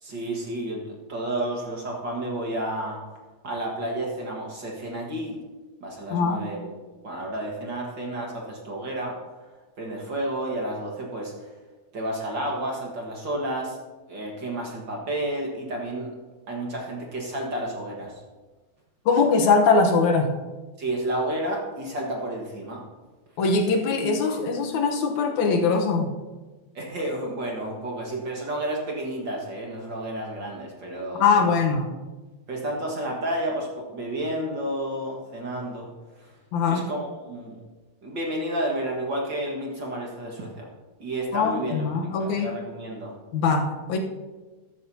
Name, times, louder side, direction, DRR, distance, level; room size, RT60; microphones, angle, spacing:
voice 1, 0.0-3.0 3.4-5.4 5.8-6.6 7.0-9.2 9.8-11.5 11.9-13.8 14.1-16.2 16.5-18.1 20.8-22.8 26.7-31.5 32.5-35.9 36.2-36.3 36.7-37.6 38.0-40.7 41.0-41.9 42.2-43.2, right 1 dB, 45° right, -1 dB, 2.0 m, -31 dB
voice 2, 6.1-6.4 19.1-20.3 23.4-26.1 31.2-31.9 36.5-36.9 41.3-42.5 43.3-44.0, left 4 dB, 80° left, 3 dB, 2.4 m, -22 dB
13.0 x 13.0 x 2.8 m, 1.3 s
omnidirectional pair, 3.3 m